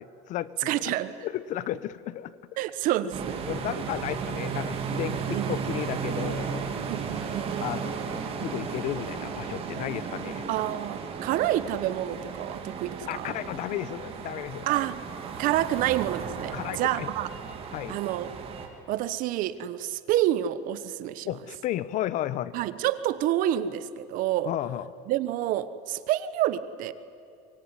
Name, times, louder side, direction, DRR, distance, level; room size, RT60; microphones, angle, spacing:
voice 1, 0.0-0.9 1.2-2.4 3.5-6.7 7.6-10.4 13.1-14.7 16.5-17.1 17.7-18.0 21.3-22.5 24.4-24.9, left 13 dB, 50° left, 17 dB, 0.9 m, -33 dB
voice 2, 0.6-1.1 2.6-3.4 5.3-5.5 6.8-7.5 10.5-13.3 14.7-15.0 15.4-17.3 17.9-18.3 18.9-21.3 22.5-24.5 25.1-26.9, right 13 dB, 55° right, 14 dB, 1.2 m, -28 dB
sound 1, 3.1-18.7, right 6 dB, 35° right, 3.4 m, -34 dB
24.5 x 22.5 x 9.8 m, 2.5 s
cardioid pair, 135°, 16 cm